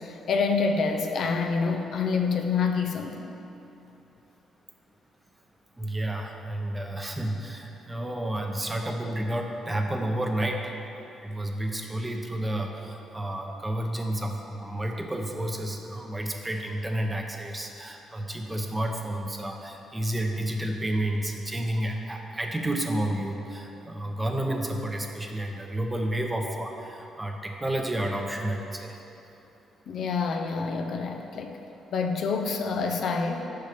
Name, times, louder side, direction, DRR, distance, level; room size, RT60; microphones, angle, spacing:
voice 1, 0.0-3.3 29.9-31.6 31.9-33.5, left 4 dB, 65° left, 4 dB, 0.6 m, -27 dB
voice 2, 5.8-10.7 11.2-29.0, right 1 dB, 15° right, 2 dB, 0.8 m, -31 dB
6.7 x 5.5 x 5.0 m, 2.9 s
cardioid pair, 90°, 0 cm